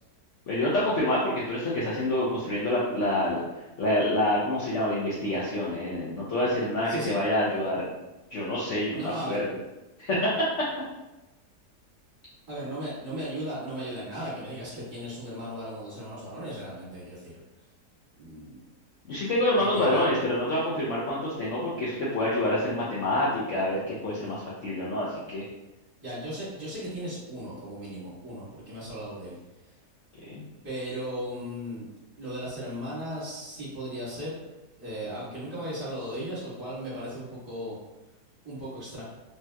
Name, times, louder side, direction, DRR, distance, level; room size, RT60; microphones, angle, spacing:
voice 1, 0.5-3.4 3.8-7.9 8.3-9.4 10.0-10.5 19.1-25.4 30.3-30.4, left 1 dB, 65° left, -7 dB, 0.8 m, -27 dB
voice 2, 6.9-7.2 8.9-9.5 12.5-17.4 18.1-18.6 19.5-20.2 26.0-29.4 29.6-29.8 30.6-31.9 32.2-34.4 34.7-37.8 38.4-39.0, equal, 25° right, -10 dB, 1.6 m, -36 dB
3.2 x 2.8 x 2.2 m, 1.0 s
omnidirectional pair, 1.7 m